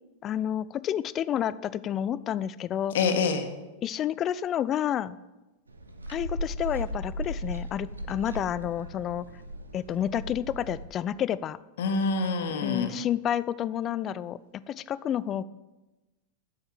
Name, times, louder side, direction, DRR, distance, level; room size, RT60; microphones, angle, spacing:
voice 1, 0.2-3.0 3.8-5.2 6.1-9.3 9.7-11.6 12.6-15.4, left 10 dB, 30° left, 18 dB, 0.3 m, -30 dB
voice 2, 2.9-3.5 11.8-12.9, left 4 dB, 60° left, 6 dB, 1.3 m, -26 dB
sound 1, 5.7-10.9, equal, 75° right, 0.9 m, -37 dB
7.8 x 7.2 x 7.3 m, 1.1 s
figure-of-eight pair, 90°, 0 cm